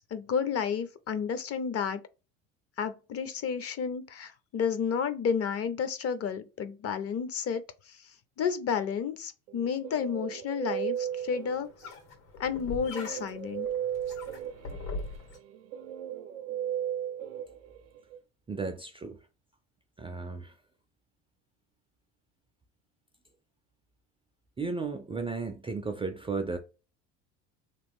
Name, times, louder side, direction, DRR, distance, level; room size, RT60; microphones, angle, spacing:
voice 1, 0.1-2.0 2.8-8.0 8.4-11.7 12.4-13.7, left 7 dB, 40° left, 0.5 m, -31 dB
Guitar, 9.5-12.0 12.8-18.2, right 10 dB, 90° right, 0.5 m, -36 dB
sound 1, 11.0-15.4, left 2 dB, 80° left, 1.8 m, -42 dB
voice 2, 18.5-19.2 20.0-20.5 24.6-26.6, right 4 dB, 15° right, 0.3 m, -34 dB
3.0 x 2.3 x 3.5 m
hypercardioid pair, 80°, 39 cm